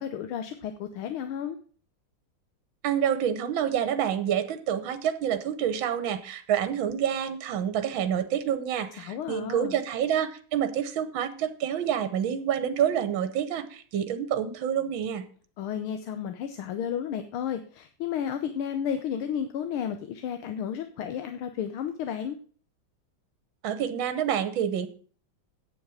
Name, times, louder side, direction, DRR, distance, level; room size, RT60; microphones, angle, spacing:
voice 1, 0.0-1.6 9.0-9.8 15.6-22.4, left 8 dB, 90° left, 8 dB, 1.7 m, -32 dB
voice 2, 2.8-15.3 23.6-24.9, right 9 dB, 70° right, 10 dB, 1.7 m, -28 dB
8.8 x 7.3 x 6.3 m, 0.43 s
omnidirectional pair, 2.3 m